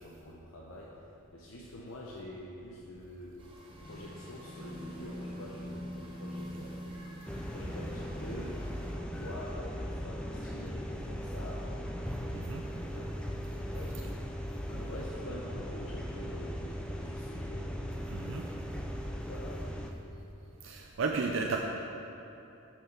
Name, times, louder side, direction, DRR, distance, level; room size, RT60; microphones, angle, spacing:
voice 1, 0.0-3.4 3.9-6.9 7.3-11.7 12.2-13.2 13.4-14.2 14.6-17.9 19.1-19.6, left 1 dB, 75° left, -4 dB, 0.8 m, -46 dB
sound 1, 3.4-8.9, equal, 25° right, 1.1 m, -44 dB
sound 2, 7.3-19.9, equal, 5° left, 0.4 m, -38 dB
voice 2, 18.1-18.4 20.6-21.6, right 4 dB, 65° right, 1 dB, 0.5 m, -33 dB
6.6 x 6.3 x 5.9 m, 2.9 s
head